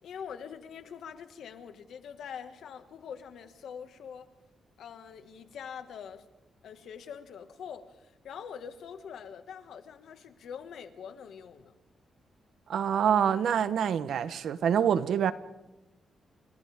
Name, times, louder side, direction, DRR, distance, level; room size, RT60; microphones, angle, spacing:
voice 1, 0.0-4.3 4.8-6.3 6.6-11.7, left 7 dB, 85° left, 1.8 m, -44 dB
voice 2, 12.7-15.3, right 8 dB, 75° right, 1.0 m, -26 dB
30.0 x 27.0 x 3.6 m
cardioid pair, 125°, 0 cm